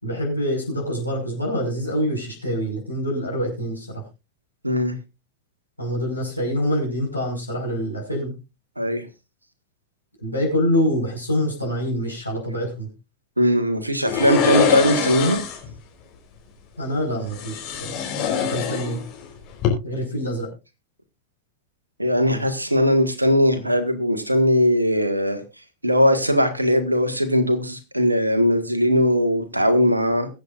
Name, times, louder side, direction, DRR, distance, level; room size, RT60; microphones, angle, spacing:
voice 1, 0.0-4.0 5.8-8.3 10.2-12.9 16.8-17.9 18.5-19.0 19.8-20.5, equal, 85° left, -2 dB, 5.3 m, -25 dB
voice 2, 4.6-4.9 8.8-9.1 13.4-15.4 22.0-25.4 25.8-30.3, equal, 85° right, 9 dB, 1.7 m, -19 dB
sound 1, 14.1-15.7 17.3-19.2 19.5-19.7, left 9 dB, 40° left, 4.0 m, -24 dB
22.5 x 7.9 x 2.5 m, 0.27 s
figure-of-eight pair, 90°, 0 cm